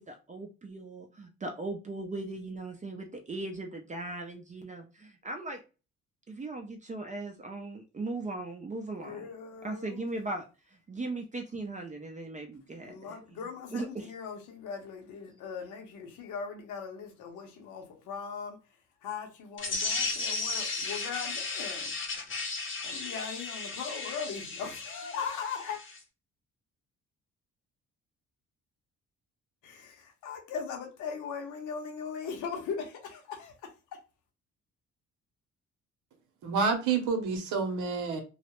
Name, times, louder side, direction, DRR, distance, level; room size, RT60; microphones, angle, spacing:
voice 1, 0.0-5.6 6.3-9.3 9.6-10.4 10.9-13.2 13.7-14.1, right 2 dB, 25° right, 0.5 m, -38 dB
voice 2, 9.0-10.0 12.8-18.6 19.0-21.9 22.8-25.8 29.6-33.5, left 6 dB, 85° left, 0.8 m, -39 dB
sound 1, 19.6-26.0, left 3 dB, 40° left, 0.8 m, -35 dB
voice 3, 36.4-38.2, right 5 dB, 85° right, 0.8 m, -28 dB
2.3 x 2.1 x 2.9 m
cardioid pair, 90°, 30 cm